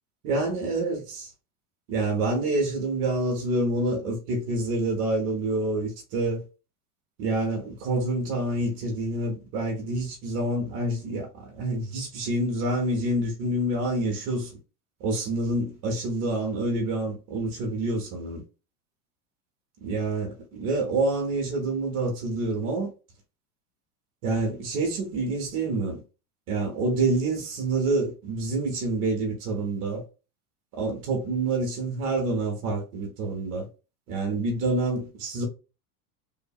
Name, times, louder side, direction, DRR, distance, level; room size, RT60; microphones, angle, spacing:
voice 1, 0.2-1.3 1.9-6.4 7.2-11.3 11.6-14.5 15.0-18.4 19.8-22.9 24.2-26.0 26.5-30.0 30.7-33.7 34.1-35.4, right 2 dB, 60° right, 1.0 m, -27 dB
2.8 x 2.5 x 2.3 m
supercardioid pair, 110°, 45 cm